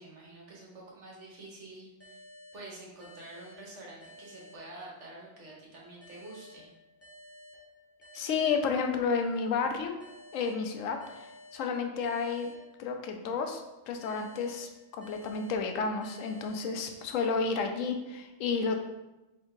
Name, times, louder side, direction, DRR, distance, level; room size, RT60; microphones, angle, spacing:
voice 1, 0.0-2.2 2.5-6.7, right 2 dB, 70° right, -3 dB, 1.4 m, -48 dB
sound 1, 2.0-5.3 6.0-9.3 10.0-13.3 14.0-17.3, left 1 dB, 15° left, 0.7 m, -54 dB
voice 2, 8.1-10.0 10.3-12.5 12.8-13.6 13.9-18.8, left 5 dB, 90° left, 4 dB, 1.0 m, -31 dB
3.5 x 3.5 x 3.7 m, 1.0 s
omnidirectional pair, 1.3 m